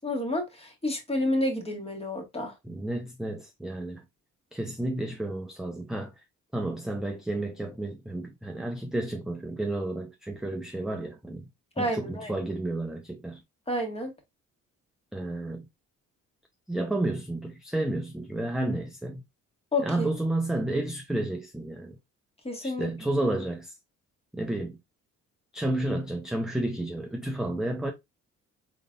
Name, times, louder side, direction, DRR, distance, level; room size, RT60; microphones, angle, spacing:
voice 1, 0.0-2.5 11.8-12.3 13.7-14.1 19.7-20.1 22.4-22.9, left 1 dB, 20° left, 1.5 m, -30 dB
voice 2, 2.6-4.0 4.5-6.1 6.5-11.5 11.8-13.4 15.1-15.6 16.7-19.2 19.8-22.0 22.6-23.7 24.3-24.8 25.5-27.9, right 1 dB, ahead, 0.6 m, -31 dB
3.9 x 3.8 x 2.3 m
cardioid pair, 90°, 30 cm